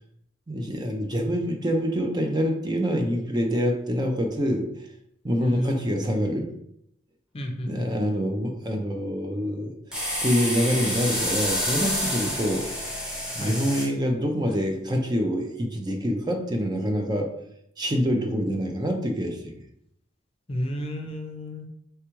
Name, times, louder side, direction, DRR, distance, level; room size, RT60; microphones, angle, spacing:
voice 1, 0.5-4.7 5.2-6.5 7.7-9.7 10.2-12.7 13.3-17.3 17.8-19.6, equal, 20° right, 3 dB, 0.5 m, -26 dB
voice 2, 5.4-6.1 7.3-7.9 12.3-12.4 13.4-13.6 20.5-21.7, equal, 30° left, 3 dB, 0.6 m, -32 dB
sound 1, 9.9-13.9, equal, 5° right, 1.0 m, -28 dB
4.8 x 3.4 x 3.0 m, 0.73 s
head